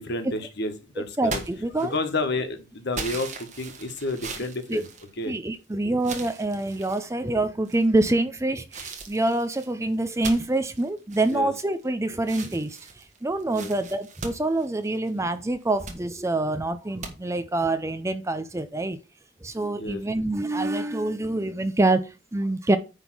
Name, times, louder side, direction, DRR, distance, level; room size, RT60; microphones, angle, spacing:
voice 1, 0.0-1.4 1.8-4.9 5.2-5.3 11.3-11.5 13.5-13.7 19.7-20.0, left 2 dB, 55° left, 1.5 m, -30 dB
voice 2, 1.2-1.9 4.7-4.8 5.3-19.0 19.4-22.8, right 2 dB, 15° right, 0.5 m, -26 dB
sound 1, 1.2-2.2 2.9-5.6 6.0-7.0 7.6-8.1 8.7-11.9 12.2-15.2 15.6-16.0 17.0-17.1, right 4 dB, 35° right, 1.5 m, -39 dB
9.8 x 3.6 x 6.1 m
head